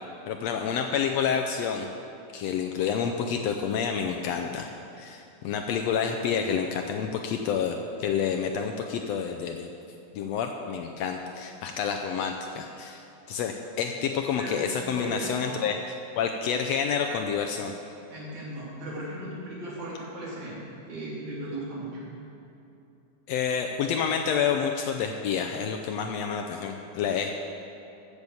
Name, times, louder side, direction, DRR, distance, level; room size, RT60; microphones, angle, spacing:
voice 1, 0.3-1.9 2.3-4.7 5.0-9.7 10.1-15.8 16.1-17.7 23.3-27.3, left 7 dB, 80° left, 3 dB, 1.5 m, -29 dB
voice 2, 14.9-15.6 18.1-20.6 20.9-22.0, right 1 dB, 70° right, -6 dB, 4.3 m, -37 dB
14.5 x 6.7 x 7.1 m, 2.8 s
omnidirectional pair, 3.5 m